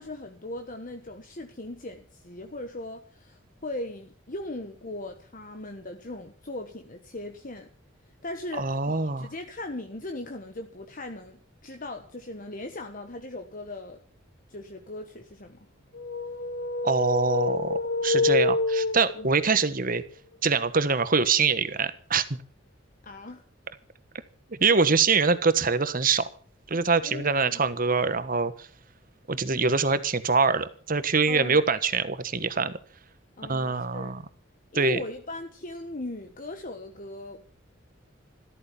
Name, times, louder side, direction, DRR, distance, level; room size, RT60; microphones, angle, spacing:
voice 1, 0.0-7.7 8.2-14.0 14.5-15.6 19.1-19.3 23.0-23.4 27.0-27.6 31.3-31.6 33.4-34.1 34.7-37.4, left 2 dB, 40° left, 5 dB, 1.3 m, -39 dB
voice 2, 8.6-9.3 16.8-20.0 20.4-22.4 24.6-26.3 26.7-28.7 29.3-32.7 33.5-34.2 34.7-35.0, right 4 dB, 45° right, 13 dB, 1.3 m, -24 dB
sound 1, 15.9-19.6, left 3 dB, 60° left, 1.4 m, -27 dB
14.0 x 13.5 x 7.0 m, 0.43 s
head